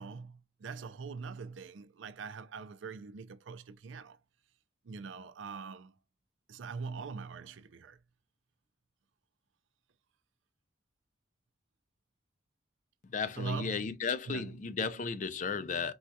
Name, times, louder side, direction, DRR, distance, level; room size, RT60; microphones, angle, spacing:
voice 1, 0.0-4.2 4.8-6.0 6.5-8.0 13.4-14.0 14.3-14.6, right 5 dB, 85° right, 0.4 m, -42 dB
voice 2, 13.1-15.9, left 5 dB, 40° left, 0.4 m, -34 dB
4.3 x 2.3 x 2.6 m
head